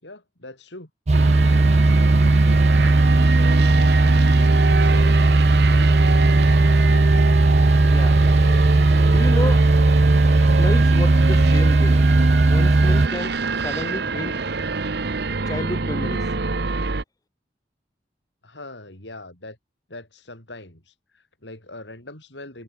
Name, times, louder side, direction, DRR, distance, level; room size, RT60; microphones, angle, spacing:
voice 1, 0.0-0.9 4.5-7.4 8.2-8.6 18.4-19.6 19.9-22.6, left 2 dB, 80° left, 6.4 m, -42 dB
sound 1, 1.1-13.1, right 2 dB, 40° right, 0.6 m, -16 dB
sound 2, 1.1-17.0, right 4 dB, 65° right, 1.1 m, -27 dB
voice 2, 7.9-8.4 9.1-9.7 10.4-12.0 12.5-14.4 15.5-16.3, left 1 dB, 20° left, 0.7 m, -31 dB
head